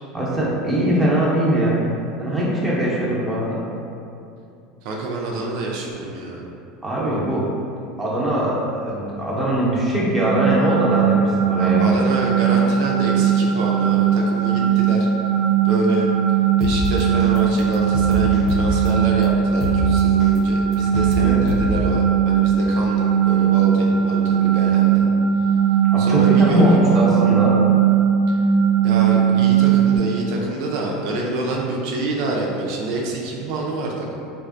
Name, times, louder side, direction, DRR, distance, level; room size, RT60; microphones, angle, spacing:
voice 1, 0.1-1.8 2.2-3.6 6.8-7.5 8.0-11.8 21.2-21.4 25.9-27.6, equal, 10° right, -7 dB, 0.7 m, -21 dB
voice 2, 4.8-6.4 11.6-15.1 15.6-16.1 16.6-25.1 26.0-27.0 28.3-28.4 28.8-34.2, right 2 dB, 65° right, -2 dB, 0.4 m, -27 dB
sound 1, 10.2-30.0, right 8 dB, 75° left, 0.7 m, -18 dB
sound 2, 16.6-16.8 17.2-17.4 17.7-18.9 19.2-19.3 19.6-19.8 20.2-20.4 20.7-21.1 21.5-21.6, left 3 dB, 40° left, 0.4 m, -26 dB
3.1 x 2.5 x 2.5 m, 2.6 s
supercardioid pair, 120°, 0 cm